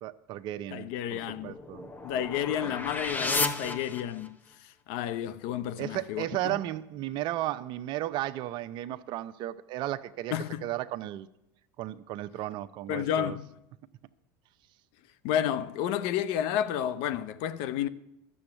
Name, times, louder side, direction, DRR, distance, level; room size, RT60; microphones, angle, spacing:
voice 1, 0.0-1.9 2.6-2.7 5.8-10.4 10.6-11.3 11.8-13.4, right 14 dB, 55° right, 0.7 m, -34 dB
voice 2, 0.7-1.6 2.0-6.6 10.3-10.6 12.9-13.5 15.2-17.9, left 10 dB, 65° left, 0.7 m, -31 dB
sound 1, 1.1-4.5, left 3 dB, 15° left, 1.0 m, -33 dB
12.0 x 7.1 x 7.8 m
hypercardioid pair, 95°, 10 cm